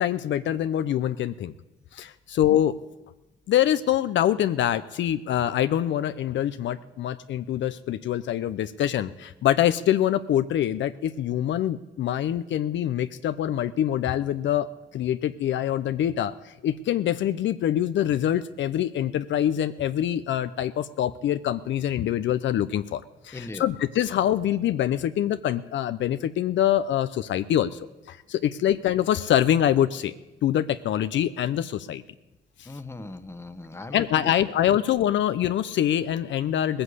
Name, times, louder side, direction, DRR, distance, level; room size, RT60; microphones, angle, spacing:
voice 1, 0.0-1.5 1.9-2.8 3.5-14.7 14.9-30.1 30.4-32.0 32.6-32.7 33.9-36.8, left 11 dB, 70° left, 11 dB, 0.6 m, -25 dB
voice 2, 23.3-23.6 32.7-34.3, left 2 dB, 15° left, 9 dB, 1.1 m, -38 dB
19.0 x 7.8 x 8.2 m, 1.1 s
cardioid pair, 90°, 20 cm